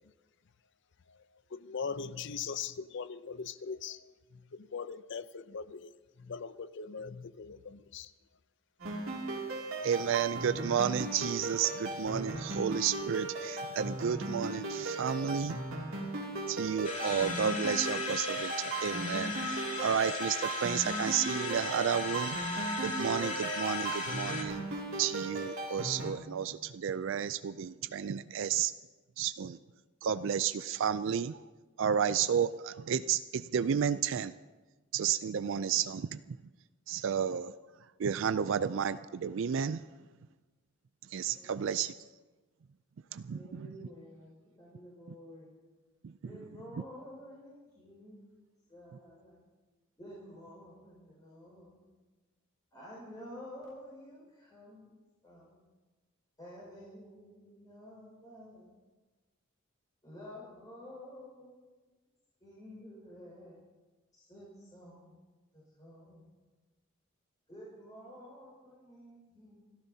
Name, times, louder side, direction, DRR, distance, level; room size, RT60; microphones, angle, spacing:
voice 1, 1.5-4.0 4.5-5.9 6.2-8.1, left 5 dB, 60° left, 14 dB, 0.6 m, -40 dB
sound 1, 8.8-26.1, right 2 dB, 80° right, 2.6 m, -38 dB
voice 2, 9.8-15.6 16.5-24.6 25.0-28.7 29.2-29.6 30.0-31.4 31.8-34.3 34.9-36.4 36.9-37.5 38.0-39.8 41.1-41.9 43.1-43.7 46.0-46.1, right 7 dB, 65° right, 13 dB, 0.4 m, -32 dB
sound 2, 16.8-24.4, left 3 dB, 35° left, 2.4 m, -37 dB
voice 3, 41.3-41.8 43.3-45.5 46.2-48.2 48.7-49.4 50.0-51.9 52.7-55.0 55.2-55.6 56.4-58.7 60.0-61.5 62.4-63.6 64.1-65.2 65.5-66.2 67.5-69.8, equal, 20° left, -7 dB, 5.3 m, -51 dB
28.0 x 14.0 x 2.8 m, 1.2 s
head